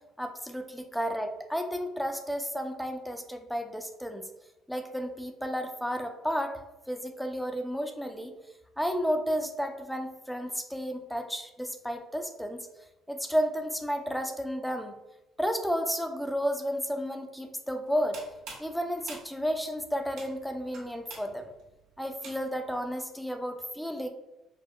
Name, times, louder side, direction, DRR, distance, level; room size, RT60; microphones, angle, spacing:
voice 1, 0.2-4.3 4.7-8.3 8.8-12.6 13.1-15.0 15.4-18.2 18.6-21.4 22.0-24.1, equal, ahead, 5 dB, 0.3 m, -32 dB
sound 1, 17.9-22.7, right 3 dB, 75° right, 1.0 m, -48 dB
4.4 x 2.0 x 2.3 m, 0.97 s
cardioid pair, 130°, 0 cm